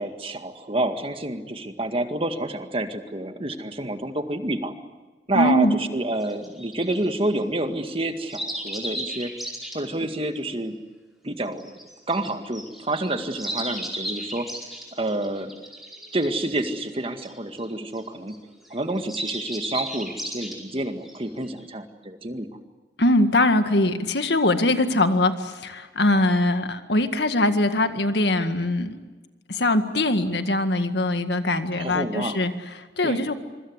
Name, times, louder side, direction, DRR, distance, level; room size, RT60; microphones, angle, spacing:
voice 1, 0.0-4.7 5.3-9.3 9.7-10.7 11.2-11.7 12.1-14.5 14.9-15.5 16.1-18.3 18.7-22.5 31.8-32.4 33.0-33.3, right 1 dB, 30° right, 7 dB, 2.0 m, -28 dB
voice 2, 5.3-5.8 23.0-28.9 29.5-32.5 33.0-33.3, left 1 dB, 70° left, 8 dB, 1.9 m, -22 dB
sound 1, 6.1-7.1 8.3-9.7 11.5-18.4 18.6-21.6, right 1 dB, ahead, 4.9 m, -35 dB
26.0 x 24.5 x 8.2 m, 1.3 s
head